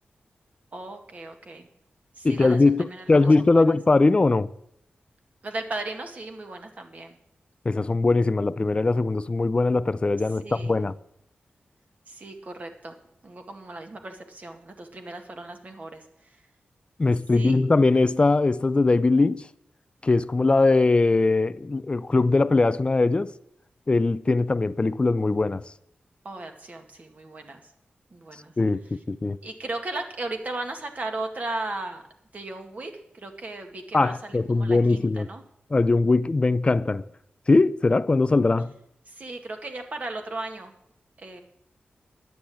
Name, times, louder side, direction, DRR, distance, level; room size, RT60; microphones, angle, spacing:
voice 1, 0.7-1.7 2.2-3.6 5.4-7.2 10.4-10.8 12.1-13.0 13.2-16.4 17.3-17.5 26.2-27.6 28.1-28.5 29.4-32.0 32.3-35.4 39.1-40.7 41.2-41.4, right 2 dB, 45° right, 2.0 m, -36 dB
voice 2, 2.2-4.5 7.6-10.9 17.0-19.5 20.0-23.3 23.9-25.6 28.6-29.4 33.9-35.3 35.7-37.0 37.5-38.7, left 3 dB, 30° left, 0.5 m, -21 dB
10.5 x 9.6 x 8.6 m
wide cardioid pair, 100°, 4 cm